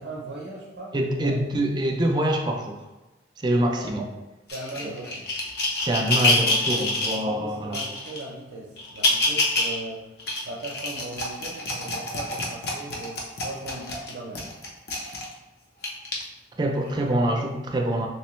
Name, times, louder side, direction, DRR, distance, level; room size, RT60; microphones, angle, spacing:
voice 1, 0.0-1.4 3.6-5.3 7.1-10.1 10.4-14.5, right 2 dB, 75° right, -3 dB, 0.7 m, -38 dB
voice 2, 0.9-2.8 3.4-4.0 4.8-4.9 5.7-7.8 16.6-18.1, right 1 dB, 25° right, 2 dB, 0.4 m, -25 dB
sound 1, 4.5-7.2 7.7-8.2 8.8-9.8 10.2-15.3 15.8-16.1 16.9-17.0, left 2 dB, 60° left, 0.7 m, -26 dB
3.2 x 3.0 x 3.1 m, 1.1 s
head